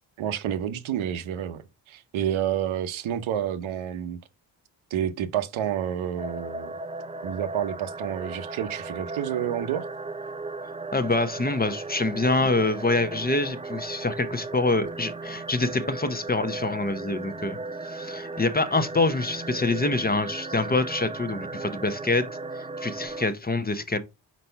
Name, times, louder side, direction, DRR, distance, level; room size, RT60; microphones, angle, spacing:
voice 1, 0.2-4.2 4.9-6.7 7.2-9.9, right 10 dB, 85° right, 0.8 m, -29 dB
sound 1, 6.2-23.3, right 3 dB, 15° right, 0.4 m, -36 dB
voice 2, 10.9-17.6 17.8-22.3 22.6-24.0, left 3 dB, 20° left, 0.7 m, -26 dB
4.5 x 4.1 x 5.5 m
cardioid pair, 90°, 46 cm